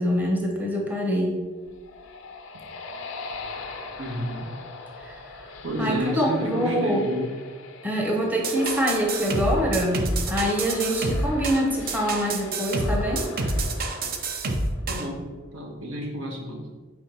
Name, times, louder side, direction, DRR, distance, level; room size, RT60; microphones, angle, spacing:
voice 1, 0.0-1.4 5.0-7.1 7.8-13.3, equal, 10° right, -1 dB, 0.8 m, -25 dB
sound 1, 1.5-15.1, left 3 dB, 80° left, 0.7 m, -41 dB
voice 2, 4.0-4.4 5.6-7.3 14.9-15.2 15.5-16.7, equal, 80° right, 0 dB, 1.3 m, -30 dB
sound 2, 8.4-15.1, right 2 dB, 50° right, 0.6 m, -27 dB
4.5 x 4.3 x 5.4 m, 1.4 s
head